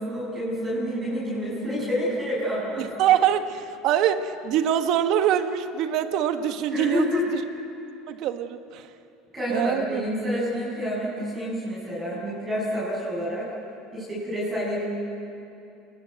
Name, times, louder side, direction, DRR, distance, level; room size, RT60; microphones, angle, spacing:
voice 1, 0.0-2.9 6.7-7.3 9.3-13.5 13.9-14.8, equal, 20° right, -8 dB, 7.7 m, -28 dB
voice 2, 2.8-7.4 8.1-8.9 9.5-10.0, right 10 dB, 55° right, 8 dB, 1.4 m, -24 dB
29.5 x 20.0 x 8.0 m, 2.7 s
cardioid pair, 135°, 0 cm